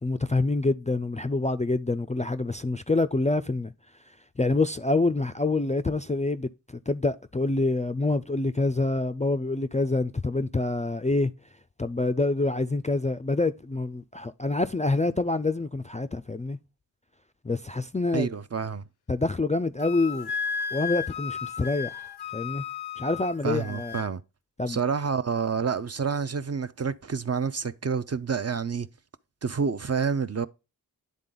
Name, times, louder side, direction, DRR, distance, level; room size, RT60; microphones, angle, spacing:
voice 1, 0.0-3.7 4.4-6.5 6.9-11.3 11.8-16.6 17.4-18.3 19.1-20.3 20.7-22.6 23.0-24.0 24.6-24.8, left 2 dB, 20° left, 0.3 m, -26 dB
voice 2, 18.1-18.8 23.4-24.2 24.7-28.9 29.4-30.5, right 6 dB, 40° right, 0.5 m, -28 dB
Wind instrument woodwind instrument, 19.8-24.1, left 7 dB, 70° left, 0.5 m, -34 dB
10.5 x 3.8 x 3.9 m
wide cardioid pair, 55°, 40 cm